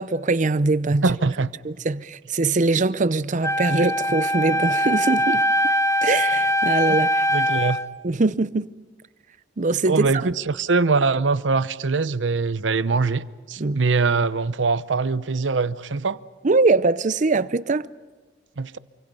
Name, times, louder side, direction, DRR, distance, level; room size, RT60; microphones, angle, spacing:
voice 1, 0.0-1.1 1.6-5.4 6.0-7.3 8.0-8.7 9.6-10.1 13.6-13.8 16.4-17.9, right 3 dB, 45° right, 0.7 m, -22 dB
voice 2, 1.0-1.5 5.3-5.4 6.9-7.0 7.3-7.8 9.9-16.2 18.6-18.8, right 4 dB, 90° right, 0.7 m, -23 dB
Wind instrument woodwind instrument, 3.4-7.9, equal, 15° left, 0.7 m, -22 dB
28.5 x 25.5 x 5.5 m
head